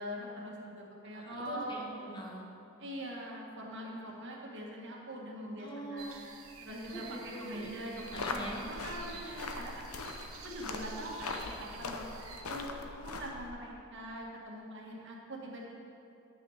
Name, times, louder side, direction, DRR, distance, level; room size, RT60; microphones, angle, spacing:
voice 1, 0.0-1.7 2.8-6.2 6.6-8.4 8.7-9.9 10.4-15.7, equal, 55° right, -1 dB, 1.6 m, -43 dB
voice 2, 1.0-2.5 5.6-6.2 6.9-8.7, equal, 20° left, -2 dB, 1.3 m, -43 dB
sound 1, 6.0-12.4, right 5 dB, 75° right, 1.0 m, -51 dB
sound 2, 8.0-13.5, left 3 dB, 90° left, 0.8 m, -41 dB
9.7 x 6.2 x 6.4 m, 2.6 s
head